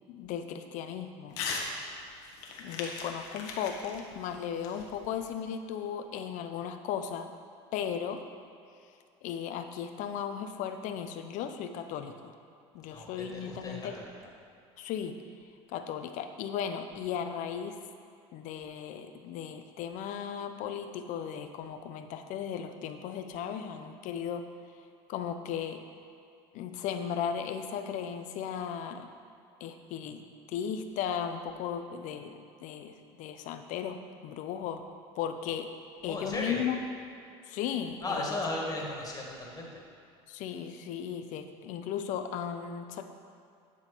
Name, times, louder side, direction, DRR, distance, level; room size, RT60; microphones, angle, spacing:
voice 1, 0.1-1.4 2.6-7.3 7.7-8.2 9.2-12.3 12.7-13.9 14.8-15.2 15.7-17.8 18.3-24.4 25.1-25.8 26.5-29.1 29.6-34.0 34.2-34.8 35.1-35.7 36.0-36.8 37.5-38.4 40.3-43.0, left 8 dB, 60° left, 8 dB, 0.7 m, -36 dB
Crumpling crinkling / Tearing, 1.3-1.7 2.0-5.3, left 5 dB, 75° left, 1.3 m, -39 dB
voice 2, 12.9-14.1 36.1-36.6 38.0-39.7, left 2 dB, 25° left, -2 dB, 2.2 m, -35 dB
10.5 x 4.0 x 6.8 m, 2.5 s
supercardioid pair, 95°, 14 cm